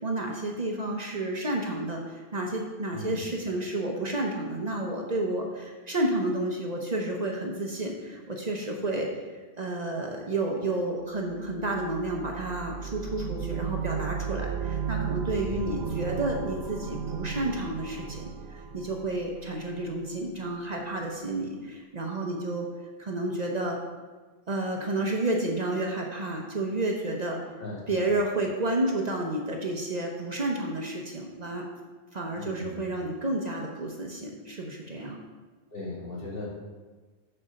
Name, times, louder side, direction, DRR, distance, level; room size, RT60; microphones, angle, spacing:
voice 1, 0.0-9.1 9.6-22.7 23.0-23.8 24.5-27.4 27.9-31.7 32.1-35.2, right 2 dB, 45° right, 1 dB, 0.9 m, -31 dB
sound 1, 11.1-20.0, right 7 dB, 75° right, 0.9 m, -35 dB
voice 2, 15.5-15.8 27.6-28.1 32.3-32.8 35.7-36.5, left 2 dB, 65° left, -8 dB, 2.7 m, -37 dB
6.6 x 4.4 x 6.3 m, 1.3 s
omnidirectional pair, 1.1 m